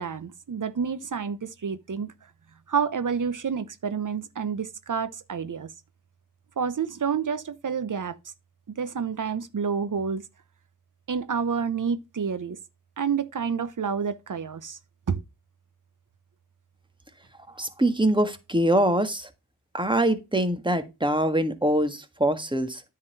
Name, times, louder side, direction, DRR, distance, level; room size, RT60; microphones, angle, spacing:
voice 1, 0.0-2.1 2.7-5.7 6.6-8.2 8.7-10.2 11.1-12.6 13.0-14.8 15.1-15.2, right 6 dB, 55° right, 0.9 m, -29 dB
voice 2, 17.5-19.3 19.7-22.8, right 1 dB, 10° right, 1.6 m, -24 dB
9.7 x 4.1 x 5.5 m
cardioid pair, 50°, 38 cm